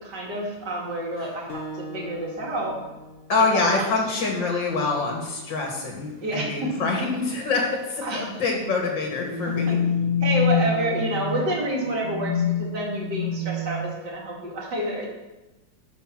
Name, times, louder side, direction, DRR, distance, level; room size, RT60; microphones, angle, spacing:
voice 1, 0.0-2.8 3.5-3.9 6.2-6.7 7.0-7.1 8.0-8.2 10.2-15.1, right 1 dB, 60° right, -2 dB, 3.1 m, -28 dB
Acoustic guitar, 1.5-4.3, right 1 dB, 40° left, 1.1 m, -40 dB
voice 2, 3.3-9.8, left 3 dB, 70° left, 1 dB, 2.3 m, -25 dB
sound 1, 6.2-6.5 6.8-6.9 7.3-7.6 8.6-14.3, left 5 dB, 25° right, 1.3 m, -27 dB
12.0 x 5.8 x 5.9 m, 1.1 s
omnidirectional pair, 2.0 m